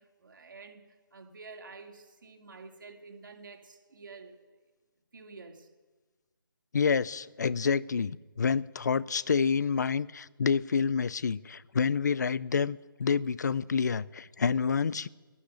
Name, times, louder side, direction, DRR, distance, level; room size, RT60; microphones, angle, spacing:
voice 1, 0.0-4.5 5.1-5.7, right 4 dB, 60° right, 4 dB, 2.5 m, -49 dB
voice 2, 6.7-15.1, left 6 dB, 50° left, 21 dB, 0.5 m, -28 dB
12.0 x 11.5 x 10.0 m, 1.3 s
hypercardioid pair, 165°, 12 cm